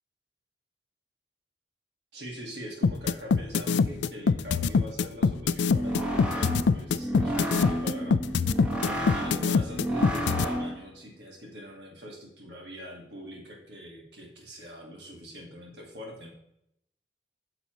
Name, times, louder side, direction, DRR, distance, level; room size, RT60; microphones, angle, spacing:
voice 1, 2.1-8.2 8.8-16.3, equal, 70° right, 0 dB, 1.7 m, -43 dB
sound 1, 2.8-10.5, left 5 dB, 80° left, 0.4 m, -23 dB
sound 2, 5.6-10.9, right 1 dB, 5° right, 1.4 m, -31 dB
9.6 x 6.8 x 3.0 m, 0.79 s
head